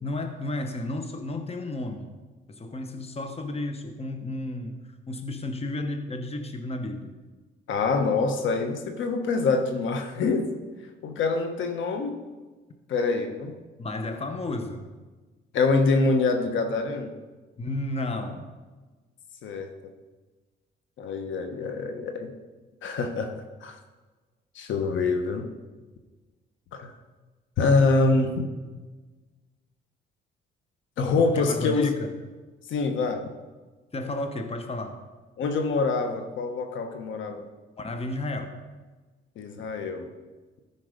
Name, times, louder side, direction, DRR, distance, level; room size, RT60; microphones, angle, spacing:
voice 1, 0.0-2.1 2.5-7.1 13.8-14.8 17.6-18.5 31.2-32.1 33.9-35.0 37.8-38.6, left 2 dB, 30° left, 7 dB, 1.2 m, -32 dB
voice 2, 7.7-10.5 11.0-12.2 12.9-13.5 15.5-17.1 19.4-19.7 21.0-22.3 22.8-23.3 23.6-23.8 24.5-25.5 26.7-26.9 27.6-28.5 31.0-31.9 32.7-33.2 35.4-37.4 39.4-40.1, left 3 dB, 75° left, 5 dB, 1.2 m, -25 dB
13.5 x 5.9 x 5.2 m, 1.3 s
cardioid pair, 90°, 20 cm